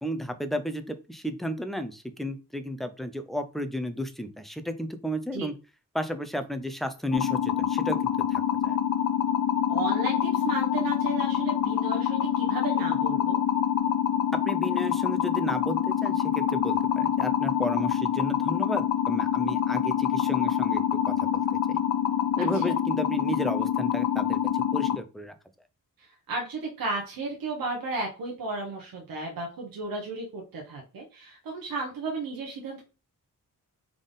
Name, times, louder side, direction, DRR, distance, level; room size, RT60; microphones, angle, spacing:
voice 1, 0.0-5.5 5.9-8.8 14.4-21.8 22.4-25.4, equal, ahead, 8 dB, 0.3 m, -33 dB
sound 1, 7.1-25.0, left 9 dB, 60° left, 0.6 m, -26 dB
voice 2, 9.7-13.4 22.4-22.6 26.0-32.8, right 3 dB, 85° right, 0 dB, 1.1 m, -34 dB
3.6 x 3.4 x 3.9 m, 0.32 s
wide cardioid pair, 160°, 34 cm